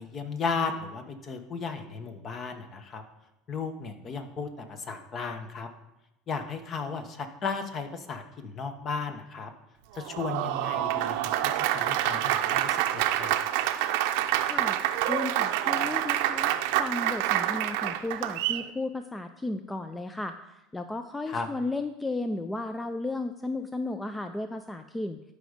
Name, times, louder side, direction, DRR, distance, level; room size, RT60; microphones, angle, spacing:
voice 1, 0.0-3.0 3.5-5.7 6.3-9.5 9.9-13.3 21.3-21.5, left 5 dB, 40° left, 7 dB, 1.2 m, -35 dB
Applause, 9.9-18.7, right 13 dB, 75° right, 0.6 m, -27 dB
voice 2, 15.1-16.5 16.8-25.2, left 2 dB, 10° left, 8 dB, 0.5 m, -34 dB
12.5 x 5.1 x 5.2 m, 0.93 s
supercardioid pair, 115°, 0 cm